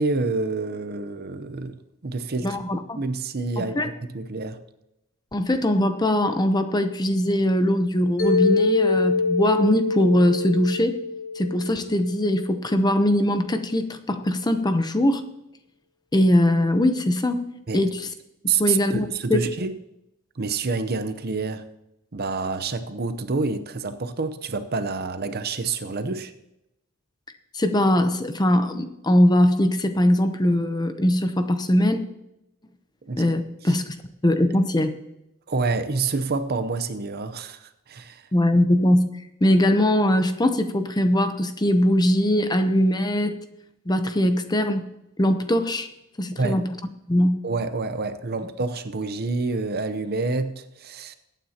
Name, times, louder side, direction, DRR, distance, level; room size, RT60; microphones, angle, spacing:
voice 1, 0.0-1.8 2.0-2.6 3.0-4.6 17.7-17.8 18.4-19.7 20.4-21.6 22.1-26.3 33.0-33.3 33.6-33.7 35.5-38.2 46.3-46.6 47.4-51.2, right 4 dB, 45° right, 0.7 m, -28 dB
voice 2, 2.4-3.0 3.6-3.9 5.3-11.0 11.4-15.2 16.1-17.4 17.7-18.1 18.4-19.4 27.5-32.0 33.2-33.9 34.2-34.9 38.3-39.1 39.4-43.4 43.9-44.9 45.2-45.9 46.2-46.8 47.1-47.4, left 1 dB, 20° left, 0.7 m, -21 dB
Mallet percussion, 8.2-12.3, left 4 dB, 70° left, 2.9 m, -24 dB
21.5 x 9.2 x 2.9 m
head